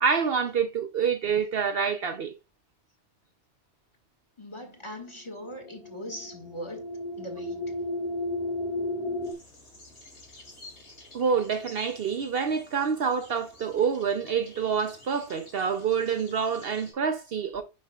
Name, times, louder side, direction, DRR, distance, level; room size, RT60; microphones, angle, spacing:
voice 1, 0.0-2.3 11.1-17.6, right 6 dB, 60° right, 0.9 m, -27 dB
voice 2, 4.4-6.9 7.2-7.8, equal, 25° left, 1.8 m, -39 dB
sound 1, 5.4-9.3, left 2 dB, ahead, 0.7 m, -33 dB
sound 2, 9.2-16.9, left 2 dB, 75° left, 2.8 m, -50 dB
9.5 x 5.1 x 2.3 m
omnidirectional pair, 1.2 m